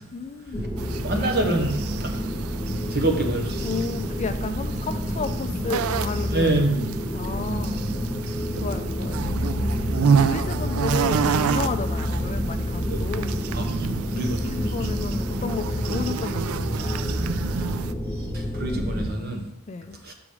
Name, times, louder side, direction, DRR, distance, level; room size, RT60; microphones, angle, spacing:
voice 1, 0.1-0.7 3.6-6.6 7.1-7.8 8.6-9.3 10.1-13.4 14.4-17.0 19.7-20.0, left 4 dB, 30° left, 9 dB, 0.4 m, -32 dB
sound 1, 0.5-19.1, equal, ahead, 2.9 m, -28 dB
sound 2, 0.8-17.9, right 6 dB, 80° right, 0.4 m, -29 dB
voice 2, 1.0-2.1 2.9-3.7 6.3-6.9 12.9-13.0 13.5-13.6 14.1-14.4 14.8-14.9 18.3-19.5 20.0-20.1, right 2 dB, 50° right, 3 dB, 1.2 m, -26 dB
7.0 x 4.9 x 5.0 m, 0.79 s
head